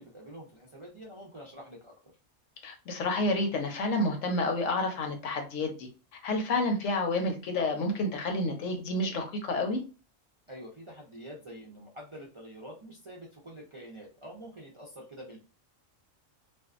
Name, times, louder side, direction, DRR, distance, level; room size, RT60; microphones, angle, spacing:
voice 1, 0.0-1.9 10.5-15.4, equal, 40° right, -3 dB, 0.4 m, -46 dB
voice 2, 2.6-5.9 6.2-9.8, left 2 dB, 80° left, 3 dB, 1.1 m, -29 dB
2.6 x 2.3 x 2.3 m, 0.33 s
omnidirectional pair, 1.3 m